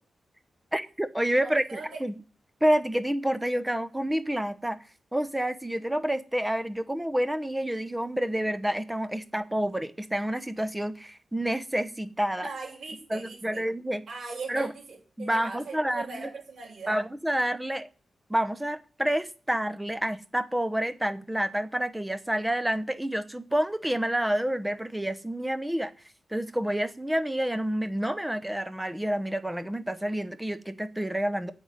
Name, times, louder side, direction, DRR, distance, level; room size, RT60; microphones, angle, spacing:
voice 1, 0.7-2.2 2.6-4.8 5.1-12.5 13.1-14.0 14.5-14.7 15.2-16.3 16.9-17.9 18.3-25.9 26.3-31.5, right 1 dB, 10° right, 11 dB, 1.0 m, -28 dB
voice 2, 1.4-2.0 12.4-13.6 14.1-17.0, right 4 dB, 60° right, -1 dB, 6.7 m, -40 dB
9.1 x 8.0 x 8.1 m, 0.39 s
wide cardioid pair, 115°, 0 cm